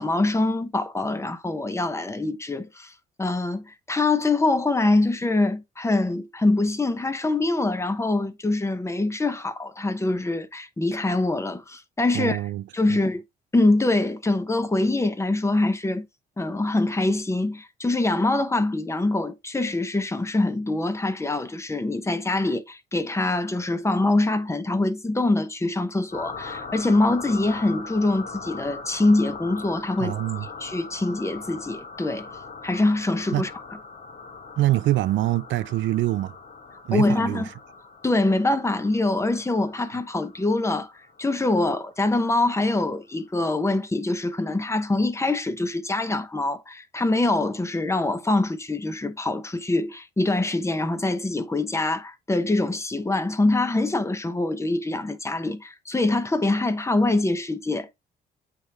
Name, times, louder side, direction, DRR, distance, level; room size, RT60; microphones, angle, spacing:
voice 1, 0.0-2.9 3.2-12.4 12.7-13.2 13.5-16.0 16.4-30.1 30.6-32.3 32.6-33.5 36.9-37.5 38.0-40.9 41.2-57.9, left 2 dB, 15° left, 0.9 m, -24 dB
voice 2, 12.1-12.6 12.9-13.0 30.0-30.5 33.3-33.5 34.6-36.3 36.9-37.5, right 15 dB, 70° right, 0.4 m, -24 dB
sound 1, 26.1-42.4, left 4 dB, 45° left, 1.4 m, -41 dB
8.1 x 3.5 x 3.5 m
cardioid pair, 90°, 20 cm